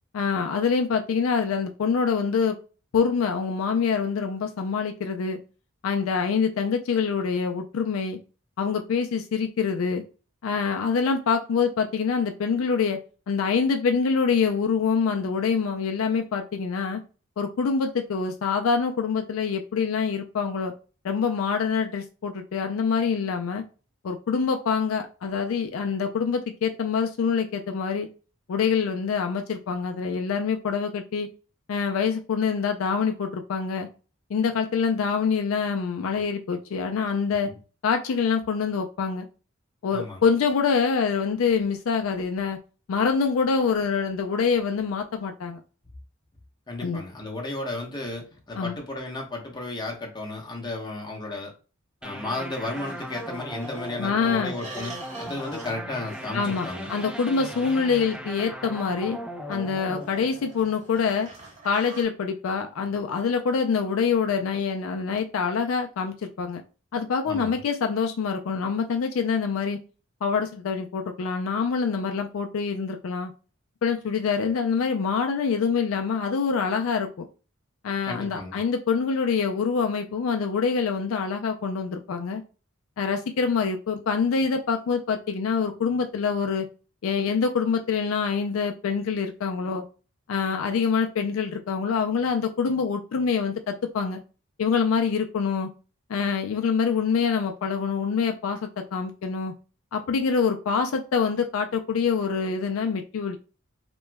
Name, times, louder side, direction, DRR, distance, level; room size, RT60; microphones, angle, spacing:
voice 1, 0.1-2.6 2.9-5.4 5.8-8.2 8.6-10.0 10.4-13.0 13.3-17.0 17.4-20.7 21.0-23.6 24.0-28.1 28.5-31.3 31.7-33.9 34.3-37.5 37.8-39.3 39.8-42.6 42.9-45.6 46.8-47.0 48.6-48.8 54.0-54.5 56.3-59.2 59.5-61.3 61.6-66.6 66.9-69.8 70.2-73.3 73.8-77.3 77.8-82.4 83.0-86.7 87.0-89.8 90.3-94.2 94.6-95.7 96.1-99.5 99.9-103.4, left 5 dB, 70° left, 5 dB, 0.4 m, -25 dB
voice 2, 39.9-40.2 46.7-51.5 52.0-56.9 67.3-67.6 78.0-78.6, left 2 dB, 20° left, 0 dB, 0.8 m, -34 dB
sound 1, 52.0-61.4, equal, 5° right, 0.3 m, -38 dB
sound 2, 52.7-53.9 54.4-55.8 56.0-58.4 59.5-62.0, right 3 dB, 35° right, 0.9 m, -47 dB
2.9 x 2.2 x 3.3 m, 0.35 s
head